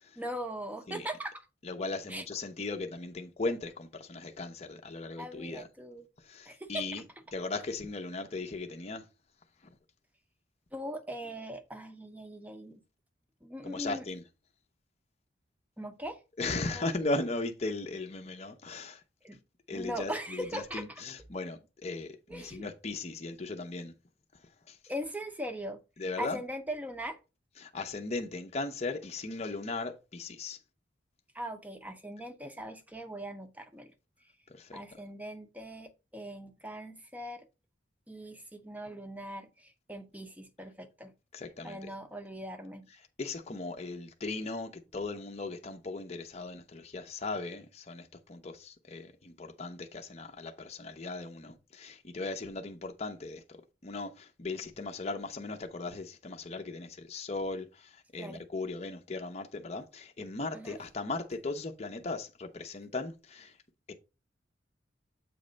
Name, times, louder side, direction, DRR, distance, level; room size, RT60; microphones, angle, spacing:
voice 1, 0.2-1.5 2.1-2.2 5.2-6.1 6.5-7.0 10.7-12.8 13.4-14.1 15.8-16.2 16.7-16.9 19.2-19.4 19.7-21.0 22.3-22.7 24.9-25.8 26.2-27.2 31.3-33.9 34.7-37.5 38.1-41.1 41.6-42.9 58.2-58.4 60.5-60.8, equal, 10° right, 0.7 m, -40 dB
voice 2, 1.6-5.7 6.2-7.0 7.3-9.0 13.6-14.2 16.4-19.0 19.7-23.9 24.7-24.8 26.0-26.4 27.6-30.6 34.5-34.8 41.3-41.9 43.2-63.6 63.9-64.0, left 3 dB, 35° left, 0.7 m, -37 dB
7.8 x 3.2 x 5.1 m
head